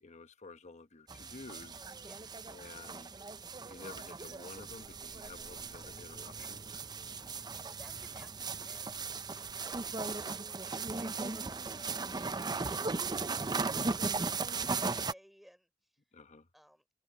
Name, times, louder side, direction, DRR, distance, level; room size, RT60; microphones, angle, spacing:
voice 1, 0.0-1.9 2.5-3.2 3.7-6.8 16.1-16.5, left 3 dB, 35° left, 1.0 m, -51 dB
sound 1, 1.1-15.1, right 4 dB, 20° right, 0.6 m, -37 dB
voice 2, 2.0-2.3 7.2-9.1 9.4-15.7 16.5-16.9, equal, ahead, 3.7 m, -60 dB
head